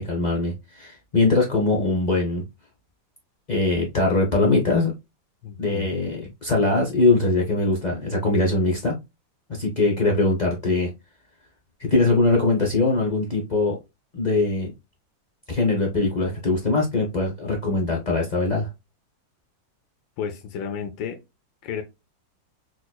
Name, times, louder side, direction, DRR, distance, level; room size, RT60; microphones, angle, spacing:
voice 1, 0.0-2.4 3.5-4.9 5.6-9.0 9.6-10.9 11.8-13.8 14.1-14.7 15.5-18.7, left 2 dB, 55° left, 0.4 m, -22 dB
voice 2, 5.4-6.0 20.2-21.2 21.6-21.8, left 7 dB, 85° left, 1.3 m, -32 dB
4.9 x 2.3 x 2.2 m
omnidirectional pair, 2.0 m